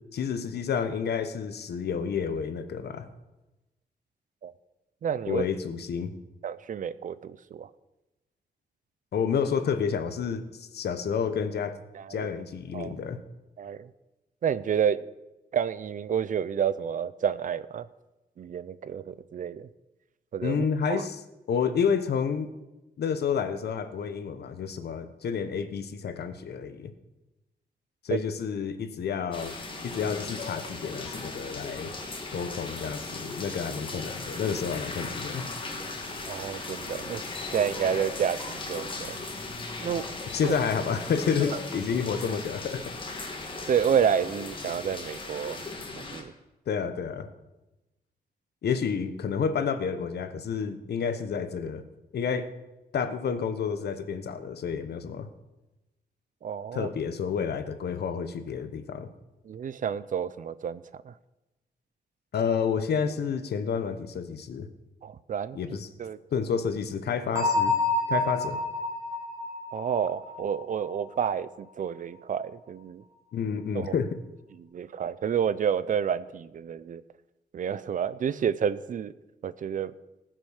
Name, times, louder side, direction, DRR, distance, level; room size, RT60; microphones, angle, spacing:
voice 1, 0.1-3.1 5.3-6.1 9.1-11.7 12.1-13.2 20.4-21.2 21.5-22.5 23.0-26.9 28.0-29.5 29.8-31.9 32.3-35.5 40.3-42.9 46.7-47.3 48.6-51.8 52.1-52.5 52.9-55.3 56.7-59.1 62.3-64.7 65.5-65.9 66.3-67.7 68.1-68.6 73.3-74.1, left 6 dB, 75° left, 10 dB, 1.1 m, -30 dB
voice 2, 5.0-5.5 6.4-7.7 11.9-12.3 12.7-12.9 13.6-13.9 14.4-15.0 15.5-17.9 18.4-19.7 20.3-20.6 20.9-21.0 28.1-28.2 36.3-37.2 37.5-39.2 39.8-40.1 40.4-40.5 43.7-45.6 46.1-46.3 56.4-56.9 59.5-61.1 65.0-65.6 66.0-66.2 69.7-73.0 73.7-73.9 74.6-77.0 77.5-79.1 79.4-79.9, right 8 dB, 50° right, 16 dB, 0.5 m, -29 dB
sound 1, 29.3-46.2, left 3 dB, 30° left, 1.7 m, -37 dB
Bell, 67.4-71.0, left 2 dB, 20° right, 3.6 m, -28 dB
19.0 x 6.3 x 6.5 m, 1.0 s
wide cardioid pair, 180°, 17 cm